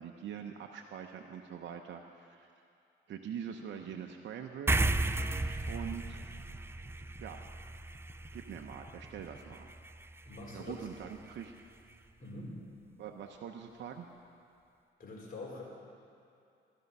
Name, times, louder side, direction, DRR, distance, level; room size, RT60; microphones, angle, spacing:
voice 1, 0.0-2.5 3.1-4.8 5.7-6.2 7.2-7.4 8.3-9.7 10.5-11.5 13.0-14.1, right 8 dB, 70° right, 3 dB, 0.8 m, -43 dB
sound 1, 4.7-11.5, right 2 dB, 10° right, 0.4 m, -36 dB
voice 2, 10.2-10.9 12.2-12.6 15.0-15.6, left 2 dB, 45° left, -3 dB, 4.3 m, -44 dB
16.0 x 12.5 x 5.4 m, 2.5 s
cardioid pair, 90°, 20 cm